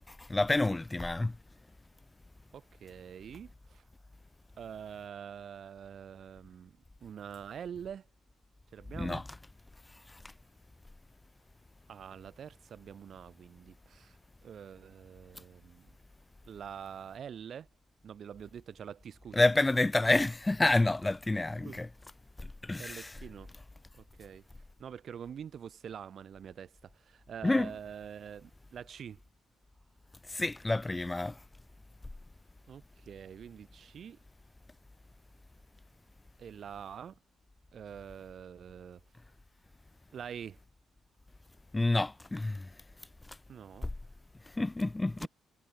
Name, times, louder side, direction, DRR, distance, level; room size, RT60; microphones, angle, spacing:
voice 1, 0.3-1.3 9.0-9.2 19.3-21.9 22.6-23.1 27.4-27.7 30.3-31.3 41.7-42.6 44.6-45.3, left 2 dB, 15° left, 0.4 m, -28 dB
voice 2, 2.5-3.8 4.6-8.1 8.7-9.3 11.9-14.1 14.4-15.9 16.5-17.7 18.0-19.5 21.6-21.8 22.8-23.5 23.9-24.4 24.8-29.2 32.7-34.2 36.4-37.2 37.7-39.0 40.1-40.6 43.5-43.9 45.2-45.3, right 8 dB, 55° right, 5.1 m, -45 dB
cardioid pair, 90°, 0 cm